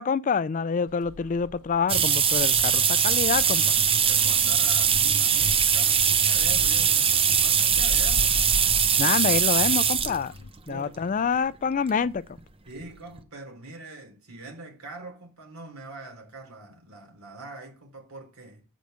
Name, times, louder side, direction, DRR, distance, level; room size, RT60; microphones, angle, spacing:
voice 1, 0.0-3.7 9.0-10.3 10.7-12.2, left 6 dB, 35° left, 0.3 m, -26 dB
sound 1, 0.9-10.5, left 3 dB, 85° left, 0.6 m, -39 dB
sound 2, 1.9-10.2 11.0-11.1 12.4-12.5 12.8-12.9 13.2-13.3, right 7 dB, 25° right, 0.7 m, -21 dB
voice 2, 3.7-8.7 10.7-11.2 12.6-18.6, right 2 dB, 70° right, 3.3 m, -43 dB
7.9 x 5.2 x 6.3 m
head